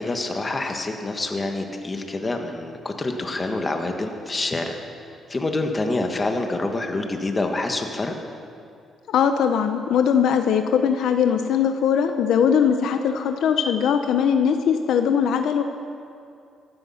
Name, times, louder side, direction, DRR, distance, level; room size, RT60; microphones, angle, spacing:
voice 1, 0.0-4.8 5.3-8.1, left 2 dB, 25° left, 4 dB, 1.6 m, -26 dB
voice 2, 9.1-15.6, left 7 dB, 75° left, 7 dB, 0.7 m, -20 dB
15.0 x 12.5 x 5.7 m, 2.4 s
cardioid pair, 90°, 0 cm